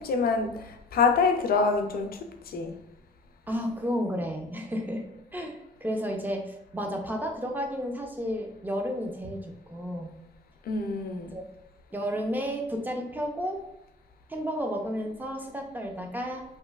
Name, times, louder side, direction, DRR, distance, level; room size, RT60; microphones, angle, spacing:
voice 1, 0.0-2.7 10.7-11.4, left 4 dB, 90° left, 5 dB, 0.4 m, -26 dB
voice 2, 3.5-5.0 5.3-10.1 11.3-11.4 11.9-13.6 14.3-16.4, equal, 10° right, 2 dB, 0.4 m, -32 dB
3.0 x 2.5 x 2.2 m, 0.87 s
wide cardioid pair, 150°, 15 cm